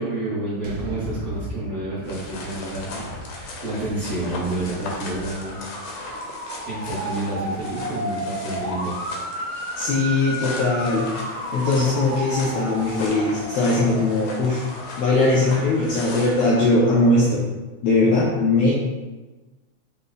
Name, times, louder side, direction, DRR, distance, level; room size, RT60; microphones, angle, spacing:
voice 1, 0.0-5.6 6.7-9.0, right 2 dB, 60° right, -11 dB, 1.9 m, -29 dB
sound 1, 0.6-4.9, right 1 dB, 80° right, 1.9 m, -36 dB
sound 2, 2.0-16.5, left 3 dB, 70° left, 1.6 m, -38 dB
Motor vehicle (road) / Siren, 4.7-17.3, equal, 40° right, 0.4 m, -33 dB
voice 2, 9.8-11.1 11.5-14.6 15.0-17.5 17.8-18.8, left 2 dB, 90° left, -6 dB, 1.3 m, -20 dB
5.1 x 2.3 x 3.9 m, 1.2 s
omnidirectional pair, 3.4 m